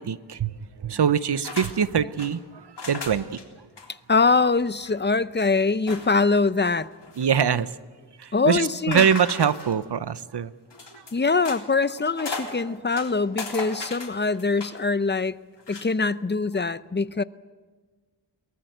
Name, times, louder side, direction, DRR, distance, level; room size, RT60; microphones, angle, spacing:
voice 1, 0.0-3.4 7.2-7.7 8.2-10.5 10.9-11.0, right 7 dB, 70° right, 15 dB, 0.8 m, -24 dB
sound 1, 1.4-1.7 2.0-2.3 2.8-3.4 3.8-3.9 4.2-4.3 4.7-4.9 5.9-6.3 6.8-7.5 8.9-9.8 10.7-11.6 12.0-12.6 12.9-14.8 15.6-15.9, left 3 dB, 75° left, 3.8 m, -36 dB
voice 2, 4.1-6.9 8.3-9.1 11.1-15.4 15.7-17.2, left 4 dB, 25° left, 15 dB, 0.6 m, -23 dB
23.0 x 19.5 x 8.0 m, 1.4 s
wide cardioid pair, 80°, 42 cm